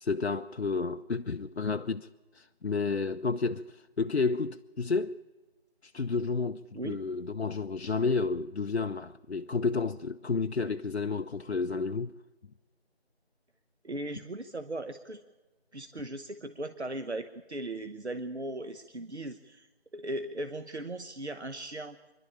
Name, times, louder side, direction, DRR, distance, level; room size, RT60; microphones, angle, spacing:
voice 1, 0.0-2.1 2.3-5.2 5.8-12.1, left 4 dB, 75° left, 0.6 m, -31 dB
voice 2, 13.8-15.2 15.7-19.7 19.9-22.0, right 1 dB, 85° right, 1.1 m, -38 dB
25.5 x 11.5 x 8.9 m
figure-of-eight pair, 180°, 33 cm